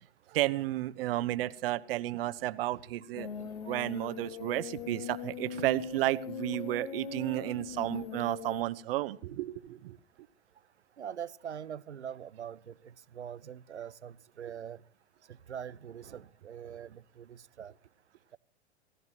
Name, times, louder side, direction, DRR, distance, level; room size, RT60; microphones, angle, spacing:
voice 1, 0.3-10.0, right 15 dB, 60° right, 1.1 m, -32 dB
sound 1, 3.2-8.6, left 8 dB, 60° left, 2.0 m, -41 dB
voice 2, 11.0-14.8 15.3-17.7, right 9 dB, 90° right, 0.7 m, -43 dB
29.0 x 16.5 x 2.9 m
hypercardioid pair, 100°, 33 cm